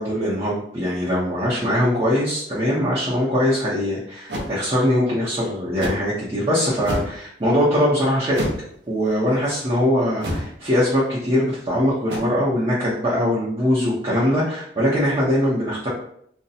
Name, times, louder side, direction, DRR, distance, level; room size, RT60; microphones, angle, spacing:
voice 1, 0.0-8.4 8.9-15.9, equal, 30° right, -8 dB, 0.7 m, -21 dB
sound 1, 4.3-4.5 5.8-6.1 6.8-7.2 8.3-8.7 10.2-10.6 12.1-12.2, equal, 80° right, 0.7 m, -27 dB
2.7 x 2.1 x 4.0 m, 0.69 s
head